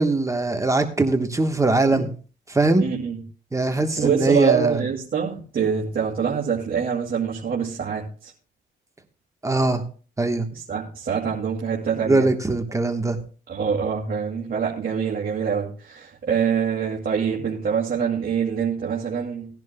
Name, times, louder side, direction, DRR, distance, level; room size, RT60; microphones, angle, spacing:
voice 1, 0.0-2.1 2.5-2.8 3.5-4.8 9.4-9.8 10.2-10.5 12.1-13.2, right 2 dB, 15° right, 6 dB, 1.2 m, -21 dB
voice 2, 2.8-3.2 3.9-8.3 10.5-12.3 13.5-19.5, right 7 dB, 50° right, -3 dB, 2.2 m, -25 dB
18.0 x 10.5 x 2.2 m, 0.38 s
cardioid pair, 90°, 20 cm